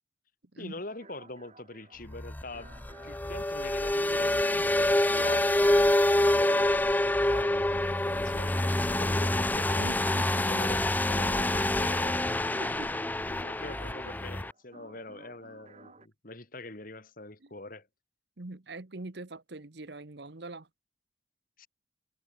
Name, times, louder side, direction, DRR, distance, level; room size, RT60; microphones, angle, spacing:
voice 1, 0.6-5.5 6.2-9.9 10.5-12.3 13.2-17.9 21.6-21.7, left 2 dB, 45° left, 2.4 m, -43 dB
sound 1, 0.9-16.1, right 3 dB, 35° right, 2.4 m, -57 dB
sound 2, 2.1-14.5, left 1 dB, 10° left, 0.4 m, -26 dB
voice 2, 3.9-4.7 9.8-10.6 12.6-13.0 14.0-14.2 17.4-17.5 18.4-20.7, right 2 dB, 60° right, 1.2 m, -43 dB
head